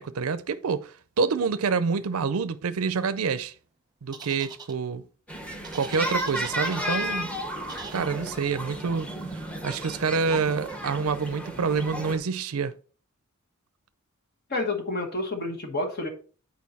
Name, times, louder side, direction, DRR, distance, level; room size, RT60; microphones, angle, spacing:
voice 1, 0.0-3.5 4.0-5.0 5.7-7.3 7.9-9.1 9.6-12.7, right 5 dB, 85° right, 0.5 m, -27 dB
sound 1, 4.1-4.7 5.6-7.2 7.7-8.1, right 5 dB, 20° right, 0.8 m, -41 dB
sound 2, 5.3-12.2, equal, 5° left, 0.9 m, -33 dB
voice 2, 14.5-16.1, left 2 dB, 50° left, 1.3 m, -29 dB
8.4 x 4.6 x 4.1 m
head